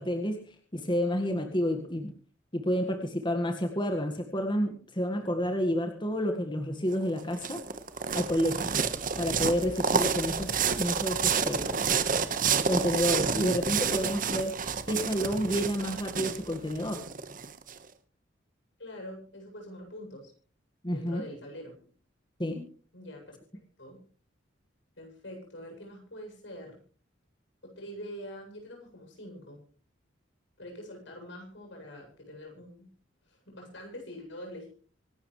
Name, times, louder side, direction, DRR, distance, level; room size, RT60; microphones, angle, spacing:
voice 1, 0.0-2.1 2.5-7.6 8.1-8.8 9.2-11.8 12.7-14.5 14.9-17.0 20.8-21.2 22.4-22.6, equal, 25° left, 4 dB, 1.8 m, -30 dB
sound 1, 6.9-17.7, right 6 dB, 45° right, 1.4 m, -29 dB
voice 2, 18.8-20.3 20.9-21.8 22.9-23.4 23.8-24.0 25.0-26.8 27.6-29.6 30.6-32.9 33.3-34.7, equal, 70° left, 3 dB, 7.9 m, -44 dB
25.5 x 12.5 x 3.3 m, 0.40 s
head